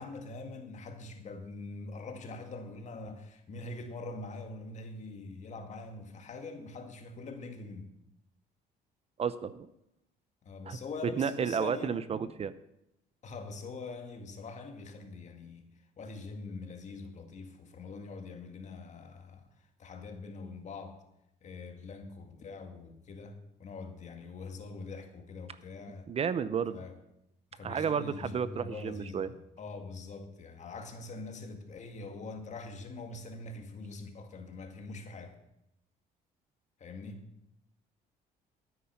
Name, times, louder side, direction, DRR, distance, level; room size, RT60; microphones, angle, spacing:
voice 1, 0.0-7.9 10.4-12.1 13.2-15.6 16.0-19.4 19.8-21.0 21.4-26.1 26.7-27.0 27.5-35.3 36.8-37.3, left 3 dB, 45° left, 2.1 m, -43 dB
voice 2, 9.2-9.7 10.7-12.5 26.1-26.8 27.6-29.3, right 7 dB, 35° right, 0.6 m, -32 dB
12.5 x 9.4 x 5.8 m
cardioid pair, 110°, 17 cm